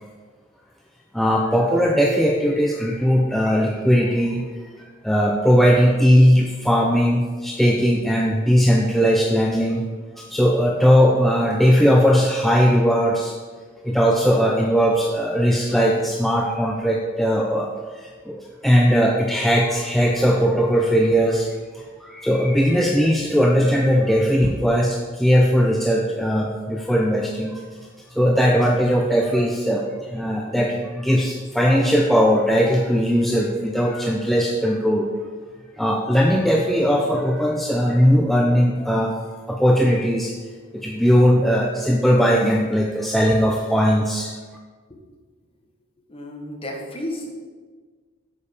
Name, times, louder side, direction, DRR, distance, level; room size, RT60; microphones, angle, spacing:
voice 1, 1.1-4.4 5.0-9.8 10.2-13.3 13.8-21.5 21.7-27.6 28.1-35.1 35.8-39.2 39.5-40.3 40.7-44.3, equal, ahead, -1 dB, 0.6 m, -19 dB
voice 2, 46.1-47.3, left 1 dB, 30° left, 0 dB, 1.7 m, -32 dB
8.3 x 5.4 x 6.9 m, 1.5 s
head